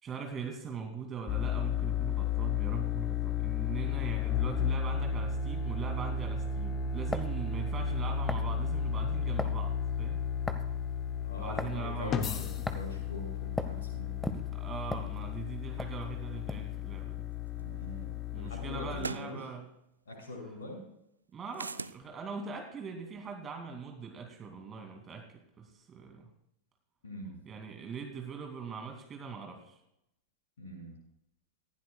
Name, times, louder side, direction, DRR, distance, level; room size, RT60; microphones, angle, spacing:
voice 1, 0.0-10.2 11.4-12.4 14.5-17.3 18.3-19.6 21.3-26.3 27.5-29.8, right 5 dB, 25° right, 3 dB, 2.6 m, -41 dB
sound 1, 1.3-19.1, left 7 dB, 30° left, 0.9 m, -33 dB
sound 2, 7.1-7.4 8.3-8.5 9.4-9.6 10.5-10.8 11.6-11.8 12.7-12.9 13.6-13.8 14.2-15.5 15.8-16.0 16.5-16.7, left 2 dB, 5° left, 1.1 m, -36 dB
voice 2, 11.2-14.1 17.5-19.4 20.1-20.8 27.0-27.3 30.6-30.9, left 1 dB, 65° left, 0 dB, 6.2 m, -43 dB
sound 3, 17.6-17.7 19.0-19.3 21.5-22.0, right 4 dB, 80° right, 0.4 m, -38 dB
18.5 x 15.5 x 2.4 m, 0.80 s
figure-of-eight pair, 90°, 0 cm